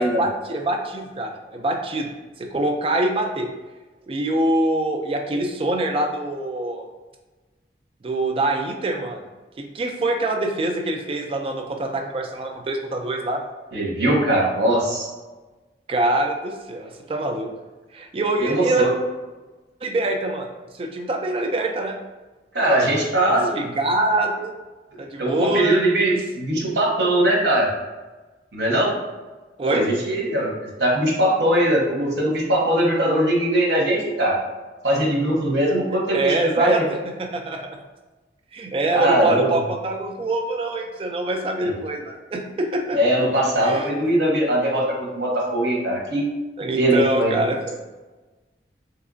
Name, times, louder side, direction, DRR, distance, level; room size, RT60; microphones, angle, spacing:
voice 1, 0.0-2.1 2.4-3.5 4.1-6.9 8.0-9.3 9.6-13.4 15.9-17.5 17.9-18.9 19.8-20.5 20.7-22.0 23.3-24.5 25.0-25.8 29.6-29.8 36.1-37.8 38.5-43.0 43.6-43.9 46.6-47.8, right 2 dB, 30° right, 3 dB, 0.3 m, -24 dB
voice 2, 13.7-15.1 18.4-18.9 22.5-23.7 25.2-27.7 28.5-28.9 29.6-30.5 30.8-34.4 34.8-36.8 38.9-39.5 41.6-41.7 42.9-46.2 46.8-47.4, right 1 dB, 75° right, -2 dB, 0.8 m, -20 dB
3.2 x 2.8 x 2.5 m, 1.2 s
head